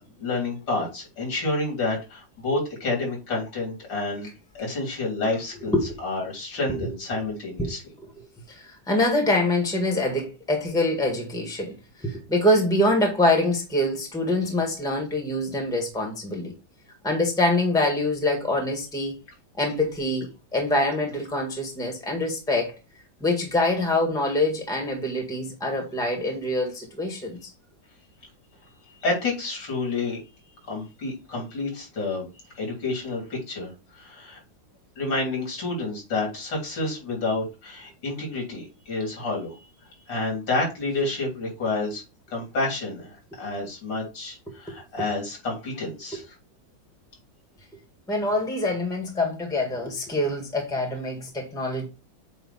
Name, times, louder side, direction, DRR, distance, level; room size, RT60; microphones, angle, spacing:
voice 1, 0.2-4.3 4.5-7.8 28.9-30.2 30.7-32.3 32.6-34.4 35.0-39.6 40.1-42.0 42.3-46.4, left 2 dB, 75° left, 3.6 m, -29 dB
voice 2, 8.5-16.5 17.0-19.2 19.5-22.7 23.2-27.5 44.5-44.7 48.1-51.8, left 1 dB, ahead, 1.5 m, -25 dB
8.0 x 2.9 x 4.1 m
omnidirectional pair, 2.0 m